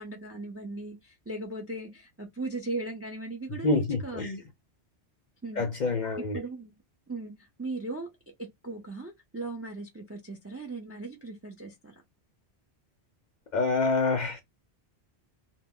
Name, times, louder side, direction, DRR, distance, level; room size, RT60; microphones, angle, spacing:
voice 1, 0.0-4.3 5.4-5.6 6.3-6.8 7.1-8.1 8.4-11.9, right 2 dB, 20° right, 0.4 m, -38 dB
voice 2, 3.6-4.4 5.6-6.4 13.5-14.4, left 3 dB, 55° left, 0.5 m, -27 dB
2.1 x 2.1 x 3.6 m
omnidirectional pair, 1.1 m